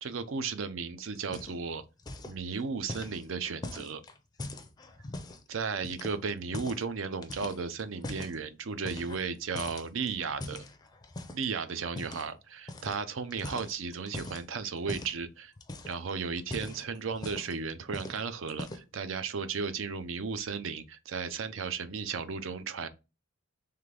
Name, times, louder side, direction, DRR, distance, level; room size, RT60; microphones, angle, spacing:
voice 1, 0.0-1.8 2.3-4.0 5.5-10.6 11.3-15.5 15.8-22.9, right 5 dB, 65° right, 0.5 m, -35 dB
sound 1, 1.1-1.7 2.0-2.4 2.9-5.4 5.8-6.9 7.2-8.4 8.8-9.3 9.5-11.4 11.9-12.3 12.7-13.0 13.3-14.4 14.9-15.2 15.6-16.0 16.4-17.6 17.9-18.2 18.5-19.0, left 2 dB, 20° left, 0.4 m, -41 dB
3.8 x 3.3 x 3.3 m
head